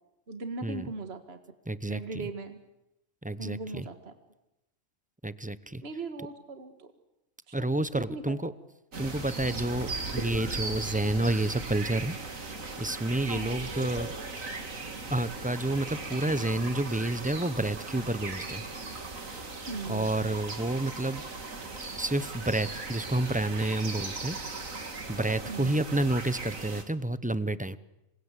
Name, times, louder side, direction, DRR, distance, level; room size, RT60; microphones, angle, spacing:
voice 1, 0.3-1.4 1.9-2.6 3.4-4.1 5.8-6.9 7.5-8.4 13.3-13.6 19.7-20.4 25.4-25.8, right 3 dB, 50° right, 7 dB, 2.0 m, -39 dB
voice 2, 1.7-2.0 3.2-3.8 5.2-5.8 7.5-8.5 9.0-12.5 12.8-14.1 15.1-18.6 19.9-21.2 21.9-24.4 25.1-27.8, right 2 dB, 10° right, 15 dB, 0.6 m, -29 dB
sound 1, 8.9-26.8, right 3 dB, 75° right, 2.8 m, -38 dB
28.0 x 24.5 x 8.3 m, 0.92 s
omnidirectional pair, 1.4 m